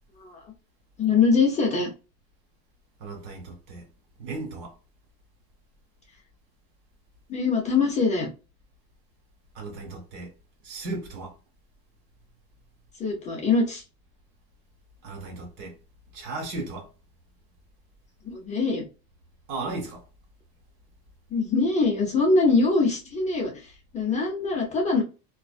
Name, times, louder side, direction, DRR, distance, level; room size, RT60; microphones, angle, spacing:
voice 1, 1.0-1.9 7.3-8.3 13.0-13.8 18.2-18.8 21.3-25.0, left 4 dB, 20° left, 0.5 m, -23 dB
voice 2, 3.0-3.8 4.2-4.7 9.5-10.3 10.6-11.3 15.0-15.8 16.1-16.9 19.5-20.0, right 3 dB, 80° right, 1.4 m, -35 dB
2.5 x 2.3 x 2.3 m
cardioid pair, 160°, 37 cm